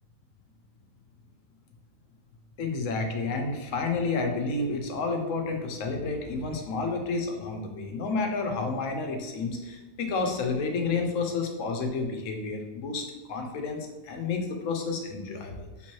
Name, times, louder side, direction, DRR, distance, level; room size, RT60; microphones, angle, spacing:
voice 1, 2.6-13.0 13.3-15.9, left 3 dB, 75° left, 4 dB, 1.1 m, -30 dB
3.8 x 2.9 x 4.4 m, 1.2 s
omnidirectional pair, 1.4 m